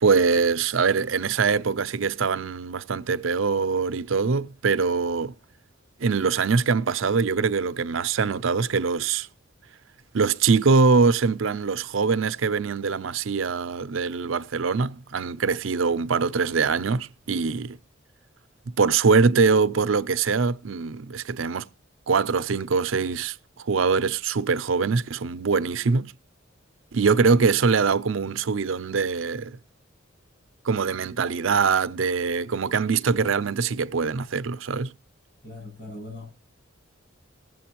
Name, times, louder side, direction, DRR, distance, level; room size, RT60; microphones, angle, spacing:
voice 1, 0.0-5.3 6.0-9.3 10.1-17.8 18.8-21.7 22.1-23.4 23.7-26.1 26.9-29.6 30.6-34.9, right 5 dB, 80° right, 0.6 m, -23 dB
voice 2, 35.4-36.4, left 2 dB, 55° left, 7.6 m, -40 dB
20.0 x 7.6 x 2.9 m
head